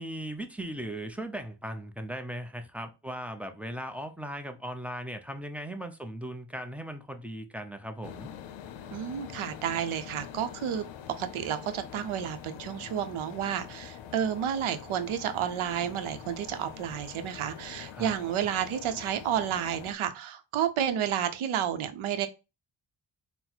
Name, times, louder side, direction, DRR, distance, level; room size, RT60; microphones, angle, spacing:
voice 1, 0.0-8.3 17.9-18.1, right 1 dB, 5° right, 0.4 m, -38 dB
sound 1, 8.0-19.9, left 9 dB, 70° left, 0.6 m, -45 dB
voice 2, 8.9-10.8 11.2-22.3, right 9 dB, 85° right, 0.7 m, -31 dB
3.9 x 2.1 x 4.3 m
cardioid pair, 90°, 48 cm